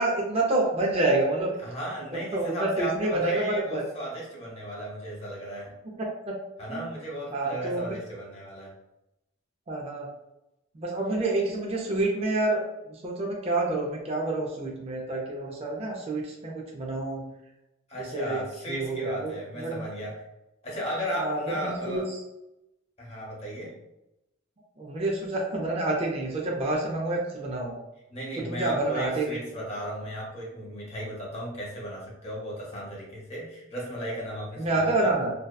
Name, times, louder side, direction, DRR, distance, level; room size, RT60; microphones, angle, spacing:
voice 1, 0.0-1.6 2.1-3.8 6.0-6.4 6.7-6.8 7.3-7.8 9.7-10.1 10.7-12.6 12.9-17.3 18.0-19.9 21.2-22.0 24.8-27.8 28.4-29.4 34.6-35.3, right 2 dB, 30° right, -2 dB, 0.4 m, -28 dB
voice 2, 1.6-5.7 6.6-8.7 17.9-20.3 20.6-22.0 23.0-23.7 28.1-35.1, equal, 30° left, -4 dB, 0.8 m, -35 dB
2.6 x 2.1 x 2.2 m, 0.91 s
head